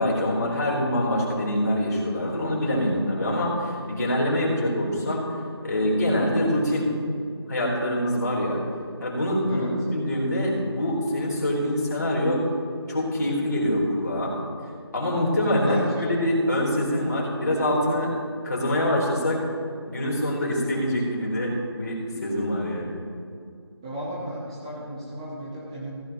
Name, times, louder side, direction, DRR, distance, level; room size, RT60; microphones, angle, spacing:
voice 1, 0.0-5.2 5.6-6.9 7.5-8.6 9.0-12.4 12.9-14.3 14.9-18.1 18.4-19.4 19.8-23.0, left 1 dB, 40° left, -4 dB, 3.7 m, -25 dB
voice 2, 15.5-16.1 23.8-25.9, right 1 dB, 10° right, -7 dB, 0.9 m, -33 dB
15.0 x 15.0 x 3.0 m, 2.3 s
figure-of-eight pair, 170°, 14 cm